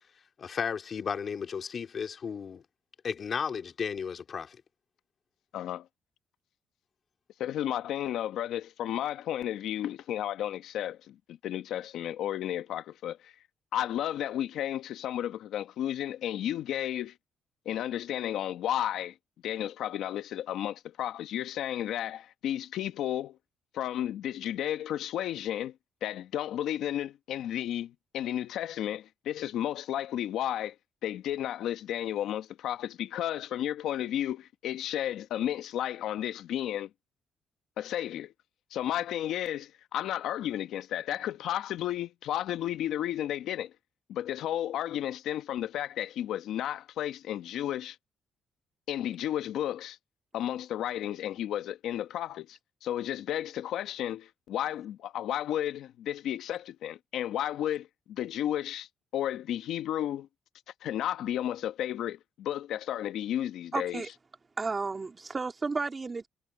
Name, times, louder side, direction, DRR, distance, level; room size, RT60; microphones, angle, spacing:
voice 1, 0.4-2.6 3.0-4.6, left 6 dB, 50° left, 2.9 m, -34 dB
voice 2, 5.5-5.9 7.4-13.3 13.7-17.1 17.6-19.1 19.4-23.4 23.7-25.7 26.0-30.7 31.0-36.9 37.8-38.3 38.7-43.7 44.1-48.0 48.9-50.0 50.3-60.3 60.8-64.0, left 11 dB, 80° left, 1.1 m, -33 dB
voice 3, 63.7-64.1 64.6-66.3, right 4 dB, 30° right, 3.1 m, -32 dB
cardioid pair, 90°, 0 cm